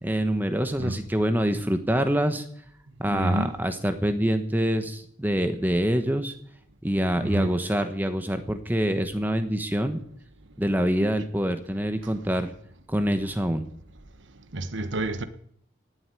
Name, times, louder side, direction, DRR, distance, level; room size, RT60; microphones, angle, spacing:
voice 1, 0.0-2.4 3.0-6.3 6.8-10.0 10.6-12.5 12.9-13.7, equal, 10° right, 1.1 m, -25 dB
voice 2, 3.1-3.5 7.2-7.6 14.5-15.2, right 1 dB, 75° right, 1.2 m, -28 dB
17.5 x 8.0 x 9.4 m
head